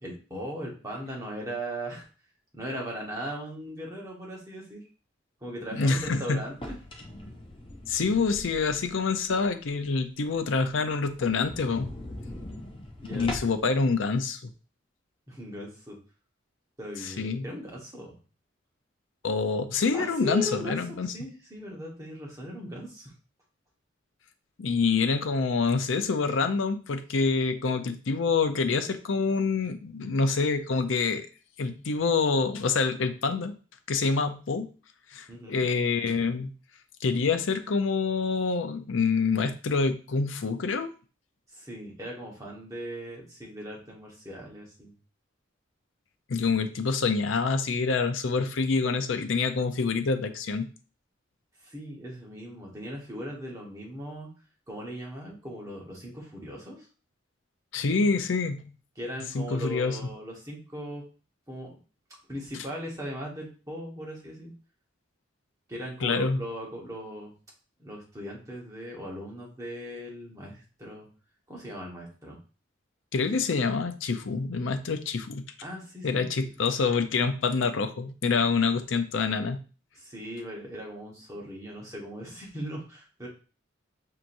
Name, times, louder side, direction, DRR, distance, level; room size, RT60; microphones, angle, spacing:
voice 1, 0.0-2.1 2.5-4.8 5.4-6.8 13.0-13.3 15.3-16.0 16.8-18.2 19.9-20.8 21.1-23.1 35.3-35.6 41.5-44.9 51.6-54.3 54.7-56.9 59.0-61.0 61.5-61.7 62.3-64.5 65.7-67.3 67.8-71.1 71.5-72.4 75.6-76.3 80.0-83.3, equal, 15° right, -3 dB, 1.2 m, -38 dB
voice 2, 5.7-6.4 7.9-11.9 13.0-14.5 17.0-17.5 19.2-21.1 24.6-31.3 31.6-33.6 33.9-34.7 35.1-36.5 37.0-40.9 46.3-50.7 57.7-58.7 59.3-60.0 66.0-66.4 73.1-75.5 76.0-79.6, left 4 dB, 80° left, 8 dB, 0.5 m, -26 dB
sound 1, 6.5-9.0 9.4-9.5 10.0-10.1 10.3-10.4 10.7-10.8 11.1-13.7, left 1 dB, 25° left, 0.6 m, -40 dB
5.9 x 2.8 x 2.6 m, 0.36 s
head